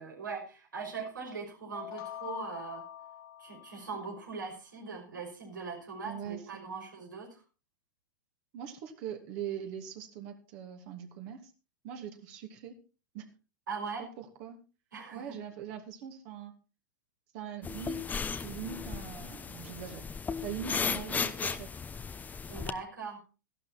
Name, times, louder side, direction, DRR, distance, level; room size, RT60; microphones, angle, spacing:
voice 1, 0.0-2.9 3.4-7.4 13.7-14.1 14.9-15.2 22.5-23.2, right 4 dB, 80° right, 1 dB, 5.7 m, -40 dB
sound 1, 1.7-4.5, left 11 dB, 45° left, 1.7 m, -45 dB
voice 2, 6.0-6.9 8.5-11.5 11.8-12.7 13.1-13.3 14.0-14.6 15.1-16.5 17.3-18.0 18.4-21.7, right 9 dB, 50° right, 4 dB, 2.6 m, -42 dB
sound 2, 17.6-22.7, left 5 dB, 15° left, 1.1 m, -35 dB
14.0 x 12.0 x 4.3 m, 0.33 s
hypercardioid pair, 100°, 10 cm